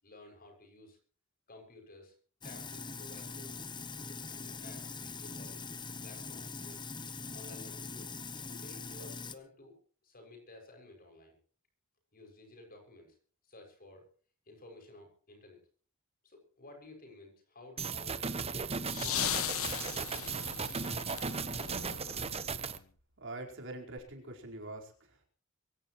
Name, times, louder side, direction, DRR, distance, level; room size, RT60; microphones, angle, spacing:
voice 1, 0.0-1.0 1.5-2.1 2.4-3.6 4.1-5.6 6.0-6.8 7.3-9.7 10.0-11.4 12.1-13.2 13.4-14.1 14.5-15.6 16.2-19.2 19.7-20.6 21.5-22.2, left 2 dB, 45° left, 4 dB, 6.6 m, -54 dB
Sink (filling or washing), 2.4-9.4, left 4 dB, 20° left, 1.0 m, -43 dB
sound 1, 17.8-22.8, right 5 dB, 30° right, 1.0 m, -36 dB
sound 2, 18.6-22.8 24.0-24.1, left 11 dB, 75° left, 1.0 m, -38 dB
voice 2, 23.2-25.3, right 2 dB, 60° right, 1 dB, 4.6 m, -44 dB
23.5 x 16.5 x 3.1 m, 0.43 s
head